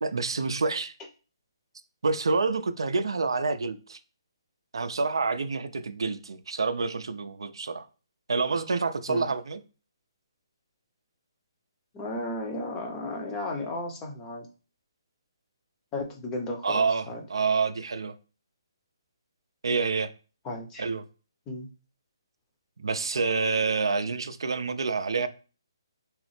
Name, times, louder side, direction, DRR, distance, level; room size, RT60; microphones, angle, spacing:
voice 1, 0.0-0.9 2.0-4.0 4.7-7.9 8.3-9.6 16.6-18.1 19.6-20.1 20.8-21.0 22.8-25.3, right 4 dB, 80° right, 0.3 m, -27 dB
voice 2, 11.9-14.5 15.9-17.2 20.4-20.8 21.5-21.7, left 2 dB, 20° left, 0.6 m, -34 dB
2.9 x 2.0 x 3.1 m
hypercardioid pair, 145°, 3 cm